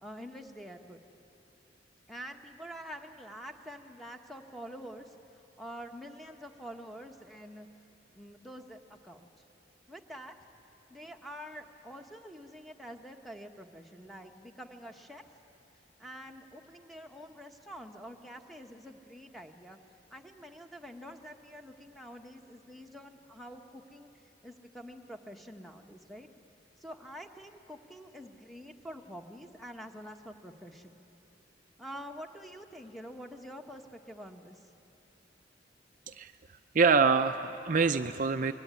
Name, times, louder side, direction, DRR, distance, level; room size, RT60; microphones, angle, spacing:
voice 1, 0.0-1.0 2.1-7.7 8.1-9.4 9.9-10.3 10.9-15.2 16.0-19.8 20.1-24.1 24.4-26.3 26.8-31.0 31.8-34.6, equal, ahead, 4 dB, 1.3 m, -47 dB
voice 2, 36.7-38.5, right 5 dB, 45° right, 8 dB, 0.6 m, -25 dB
24.5 x 22.5 x 9.6 m, 2.9 s
head